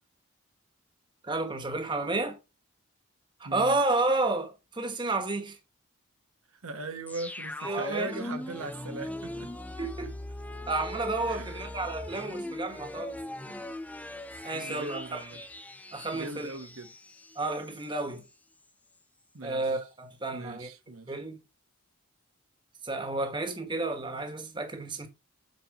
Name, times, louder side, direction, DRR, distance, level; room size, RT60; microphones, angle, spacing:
voice 1, 1.2-2.4 3.4-5.6 7.6-8.1 9.8-10.1 10.7-13.1 13.5-13.6 14.4-15.2 15.9-16.6 17.3-18.2 19.4-20.7 21.1-21.4 22.8-25.1, right 2 dB, 20° right, 1.1 m, -31 dB
voice 2, 3.4-3.8 6.5-9.5 11.3-11.7 14.5-15.4 16.1-16.9 19.3-19.8 20.3-21.2, right 2 dB, 85° right, 1.1 m, -39 dB
sound 1, 7.1-17.9 18.2-18.3, left 1 dB, 5° left, 0.5 m, -40 dB
8.2 x 4.3 x 4.0 m
head